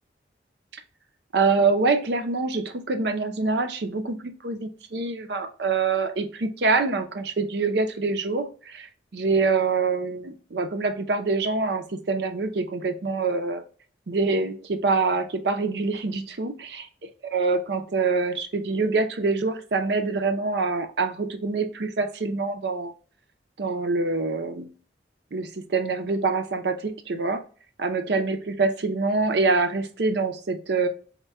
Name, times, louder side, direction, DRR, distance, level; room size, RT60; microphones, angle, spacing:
voice 1, 1.3-8.9 9.1-13.6 14.1-16.5 17.3-22.9 23.6-24.7 25.3-27.4 27.8-30.9, right 4 dB, 70° right, 8 dB, 0.6 m, -25 dB
4.3 x 2.2 x 3.4 m, 0.40 s
head